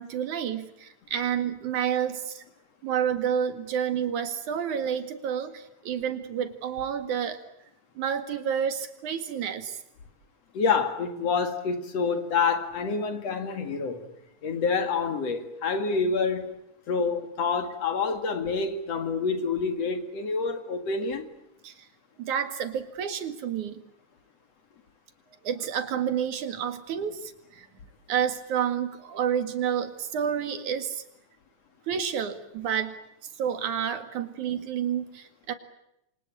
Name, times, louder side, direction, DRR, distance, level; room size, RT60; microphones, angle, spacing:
voice 1, 0.0-2.4 2.8-7.4 8.0-9.8 21.6-21.7 22.2-23.8 25.4-27.7 28.1-31.0 31.9-33.0 33.4-35.5, right 8 dB, 85° right, 3.5 m, -29 dB
voice 2, 10.5-14.1 14.4-16.5 16.9-21.3, left 5 dB, 60° left, 3.1 m, -27 dB
28.5 x 25.0 x 8.5 m
omnidirectional pair, 3.4 m